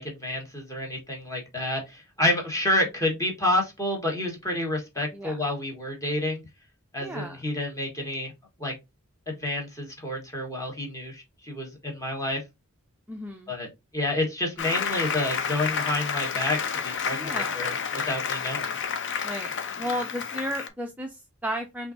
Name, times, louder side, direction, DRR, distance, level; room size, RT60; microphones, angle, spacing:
voice 1, 0.0-6.4 6.9-8.3 8.6-8.7 9.3-12.4 13.5-13.7 13.9-18.7, left 1 dB, 15° left, 1.4 m, -29 dB
voice 2, 7.0-7.4 13.1-13.5 17.1-17.7 19.2-21.9, equal, 5° right, 0.4 m, -34 dB
Applause, 14.6-20.7, left 6 dB, 55° left, 0.6 m, -30 dB
5.5 x 2.6 x 2.6 m
head